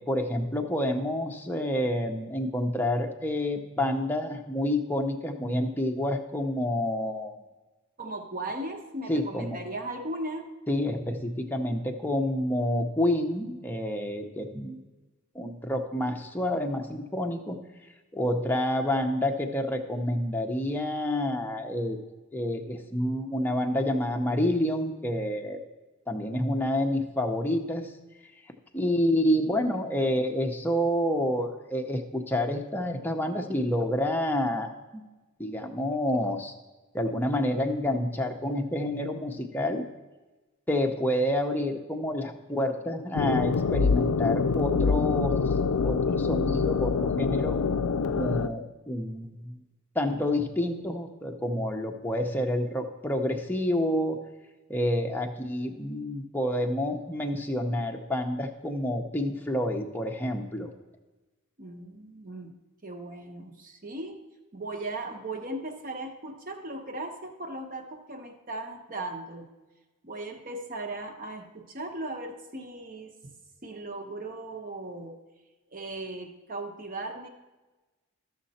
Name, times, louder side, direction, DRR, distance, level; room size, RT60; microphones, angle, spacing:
voice 1, 0.1-7.4 9.1-9.6 10.7-14.8 15.3-17.6 18.1-22.0 22.3-25.6 26.1-27.9 28.7-35.1 35.4-36.5 36.9-39.8 40.7-45.3 45.8-47.6 48.1-49.5 49.9-54.2 54.7-60.7, left 1 dB, 10° left, 2 dB, 0.7 m, -28 dB
voice 2, 8.0-10.5 61.6-62.5 62.8-64.2 64.5-69.5 70.0-73.3 73.6-75.1 75.7-77.3, right 2 dB, 40° right, 5 dB, 1.0 m, -37 dB
sound 1, 43.1-48.5, left 5 dB, 85° left, 0.4 m, -25 dB
13.5 x 6.5 x 4.2 m, 1.2 s
head